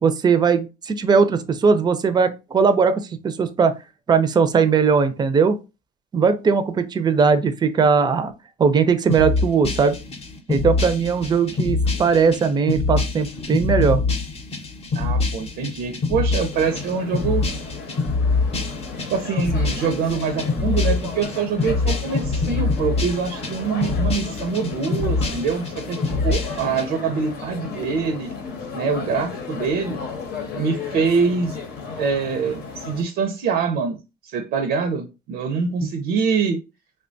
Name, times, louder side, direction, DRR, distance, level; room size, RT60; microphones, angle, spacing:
voice 1, 0.0-3.7 4.1-5.6 6.1-8.3 8.6-10.0 10.5-14.0 35.8-35.9, right 5 dB, 25° right, 0.4 m, -19 dB
sound 1, 9.1-26.8, left 3 dB, 35° left, 0.7 m, -25 dB
voice 2, 14.9-17.4 19.1-28.3 28.7-30.0 30.5-31.6 32.0-34.0 34.2-36.6, right 5 dB, 85° right, 0.5 m, -24 dB
sound 2, 16.5-33.0, left 5 dB, 75° left, 0.8 m, -34 dB
3.3 x 2.2 x 2.5 m
cardioid pair, 110°, 17 cm